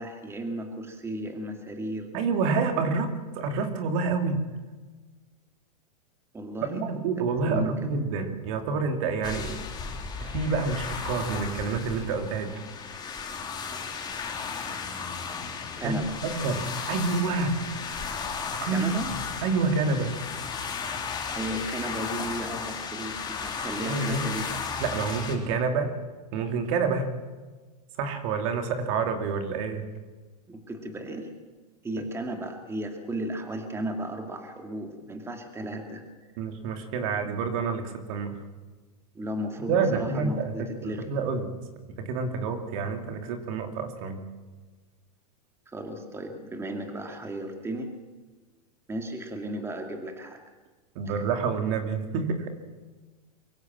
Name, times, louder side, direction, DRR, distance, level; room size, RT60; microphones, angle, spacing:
voice 1, 0.0-2.1 6.3-6.8 7.4-7.7 15.8-16.4 18.7-19.1 21.3-24.5 30.5-31.3 31.8-36.0 39.1-41.0 45.7-47.9 48.9-50.4, right 1 dB, 10° right, 4 dB, 2.6 m, -34 dB
voice 2, 2.1-4.5 6.7-9.6 10.2-12.6 15.8-17.8 18.6-18.9 19.4-20.2 23.8-24.3 24.8-26.0 26.3-27.1 28.0-29.9 36.4-38.4 39.7-41.5 41.9-44.2 50.9-52.5, right 4 dB, 55° right, 6 dB, 2.9 m, -28 dB
sound 1, 9.2-25.4, left 5 dB, 20° left, 3.3 m, -35 dB
23.5 x 15.5 x 7.6 m, 1.3 s
hypercardioid pair, 125°, 20 cm